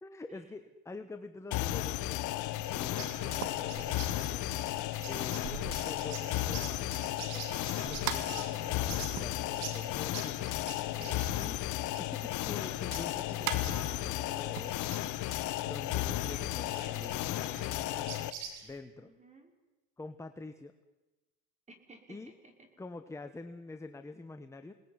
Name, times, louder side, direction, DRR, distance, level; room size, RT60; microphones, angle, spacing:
voice 1, 0.0-2.5 2.7-4.5 4.8-10.5 11.4-11.6 12.0-18.3 18.6-19.1 20.0-20.7 22.1-22.3 22.8-24.7, left 3 dB, 5° left, 7 dB, 1.3 m, -47 dB
sound 1, 1.5-18.3, left 15 dB, 45° left, 1.5 m, -34 dB
sound 2, 2.3-18.8, right 6 dB, 75° right, 6.9 m, -47 dB
sound 3, 3.1-11.7 12.0-17.5, right 11 dB, 55° right, 2.0 m, -45 dB
voice 2, 10.9-11.5 19.0-19.5 21.7-22.7, right 2 dB, 15° right, 5 dB, 5.7 m, -55 dB
28.5 x 19.5 x 9.8 m, 1.1 s
supercardioid pair, 135°, 41 cm